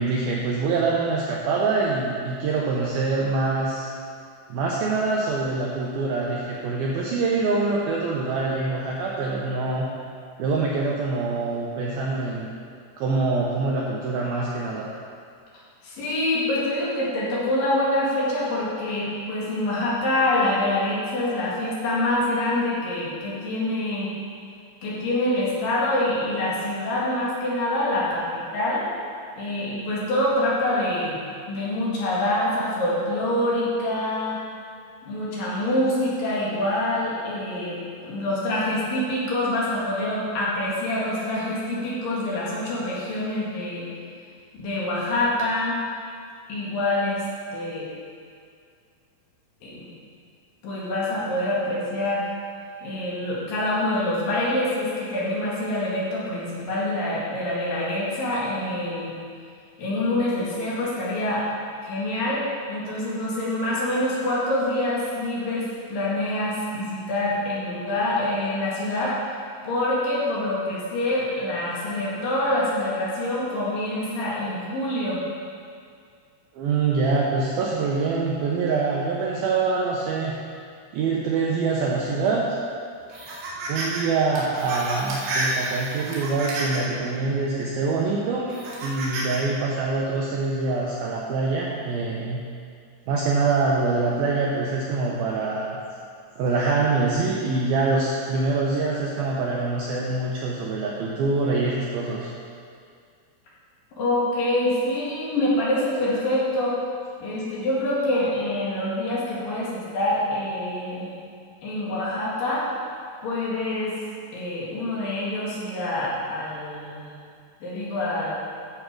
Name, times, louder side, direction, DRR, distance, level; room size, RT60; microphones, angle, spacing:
voice 1, 0.0-3.9 4.5-9.9 10.4-12.5 13.0-14.9 76.5-80.3 80.9-82.5 83.7-92.4 93.1-95.8 96.4-102.3, right 3 dB, 85° right, -3 dB, 2.2 m, -25 dB
voice 2, 15.8-24.1 24.8-28.9 29.4-34.4 35.0-43.9 44.5-45.8 46.5-47.2 47.5-47.9 49.6-49.8 50.6-52.3 52.8-59.1 59.8-61.4 61.8-62.4 62.7-69.2 69.6-75.2 104.0-106.8 107.2-111.1 111.6-112.7 113.2-114.0 114.3-117.1 117.6-118.3, left 1 dB, 55° left, -6 dB, 3.2 m, -26 dB
sound 1, 83.1-84.0 84.4-86.9 87.6-87.7 88.5-89.4, right 2 dB, 65° right, 3.7 m, -30 dB
13.0 x 6.8 x 4.8 m, 2.3 s
omnidirectional pair, 5.4 m